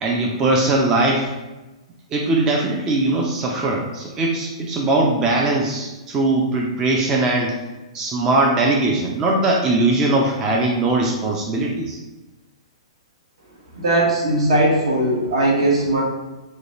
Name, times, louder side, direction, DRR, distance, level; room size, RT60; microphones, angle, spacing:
voice 1, 0.0-1.3 2.1-7.6 7.9-12.0, right 2 dB, 20° right, -1 dB, 0.3 m, -20 dB
voice 2, 13.7-16.0, right 1 dB, 65° right, -3 dB, 0.9 m, -18 dB
2.8 x 2.2 x 2.6 m, 1.1 s
figure-of-eight pair, 115°, 3 cm